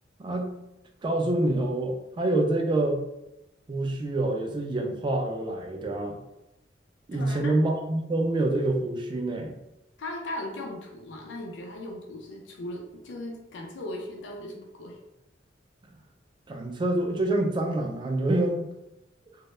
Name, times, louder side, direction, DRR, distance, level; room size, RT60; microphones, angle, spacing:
voice 1, 0.2-0.6 1.0-3.0 3.7-6.2 7.1-9.6 16.5-18.7, right 2 dB, 25° right, 2 dB, 0.3 m, -26 dB
voice 2, 7.1-7.5 10.0-15.0, left 1 dB, 85° left, 0 dB, 0.4 m, -38 dB
2.1 x 2.0 x 3.0 m, 0.89 s
head